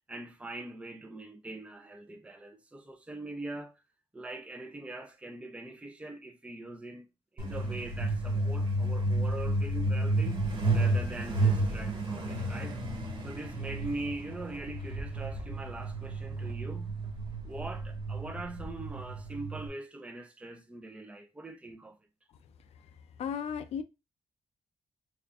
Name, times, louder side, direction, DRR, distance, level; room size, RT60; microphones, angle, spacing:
voice 1, 0.1-3.7 4.1-7.1 7.3-12.8 13.2-17.0 17.4-22.0, right 2 dB, 10° right, 0.5 m, -42 dB
Truck, 7.4-19.7, right 2 dB, 50° right, 1.5 m, -31 dB
voice 2, 23.2-23.8, left 7 dB, 75° left, 0.4 m, -34 dB
3.5 x 2.4 x 3.5 m
cardioid pair, 100°, 11 cm